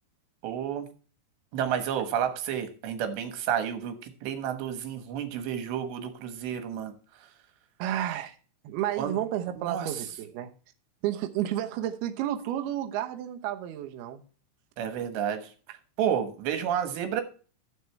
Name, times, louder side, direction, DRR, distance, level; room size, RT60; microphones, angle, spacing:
voice 1, 0.4-0.9 1.5-6.9 9.0-9.1 9.6-9.9 14.8-15.5 16.0-17.2, right 9 dB, 70° right, 3.2 m, -30 dB
voice 2, 7.8-8.4 8.6-10.5 11.0-14.2, right 12 dB, 90° right, 2.2 m, -31 dB
12.5 x 7.8 x 3.3 m
omnidirectional pair, 5.9 m